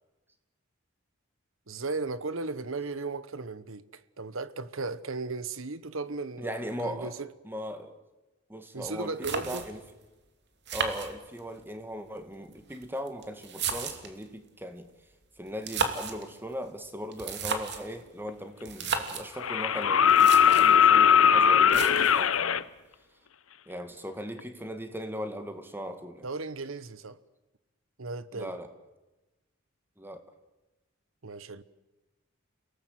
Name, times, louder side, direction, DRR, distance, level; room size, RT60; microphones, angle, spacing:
voice 1, 1.7-7.3 8.7-9.6 26.2-27.2 28.0-28.6 31.2-31.6, right 3 dB, 75° right, 1.2 m, -36 dB
voice 2, 6.4-7.1 7.4-8.0 8.5-9.8 10.7-14.9 15.4-22.7 23.7-26.3 28.3-28.7 30.0-30.2, equal, 10° right, 2.1 m, -38 dB
sound 1, 8.8-8.9 9.2-9.9 10.7-11.6 12.5-14.2 15.5-16.2 17.1-17.9 18.6-19.3 19.8-19.9 20.1-20.8 21.7-22.3, right 5 dB, 55° right, 3.0 m, -33 dB
sound 2, 18.3-18.4 19.4-22.6 24.4-24.5, left 8 dB, 80° left, 0.8 m, -20 dB
30.0 x 18.5 x 8.1 m
head